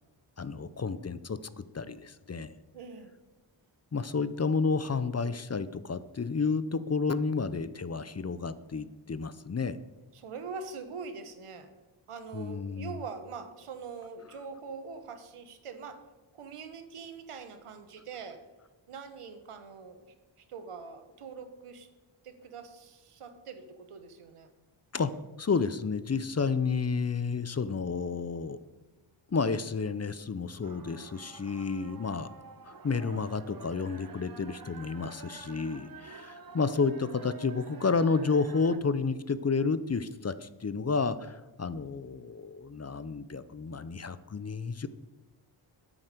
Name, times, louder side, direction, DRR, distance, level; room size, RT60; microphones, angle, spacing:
voice 1, 0.4-2.5 3.9-9.8 12.3-12.9 24.9-28.6 29.3-32.3 32.6-44.9, left 4 dB, 30° left, 14 dB, 0.6 m, -31 dB
voice 2, 2.7-3.1 10.1-11.7 12.1-16.0 16.3-18.4 18.9-20.1 20.4-21.9 22.2-24.5, right 5 dB, 90° right, 9 dB, 1.3 m, -43 dB
sound 1, 30.6-38.8, right 5 dB, 45° right, 1.1 m, -48 dB
9.6 x 9.0 x 6.8 m, 1.2 s
cardioid pair, 65°, 50 cm